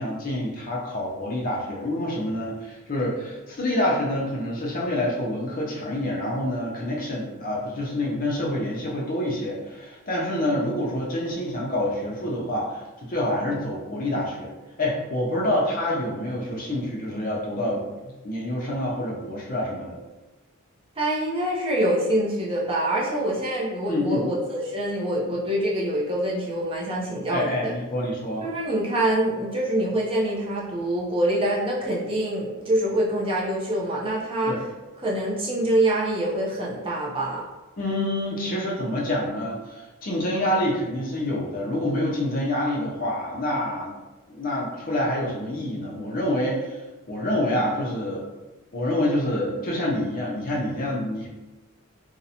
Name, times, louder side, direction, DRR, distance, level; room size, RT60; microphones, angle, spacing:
voice 1, 0.0-14.5 14.8-20.0 23.9-24.2 27.3-28.5 34.5-34.6 37.8-43.9 44.3-46.8 47.1-48.2 48.7-51.3, left 1 dB, 40° left, -3 dB, 0.5 m, -27 dB
voice 2, 21.0-27.7 28.4-34.5 35.0-37.4, right 1 dB, 25° right, -5 dB, 0.4 m, -25 dB
2.5 x 2.0 x 2.7 m, 1.1 s
head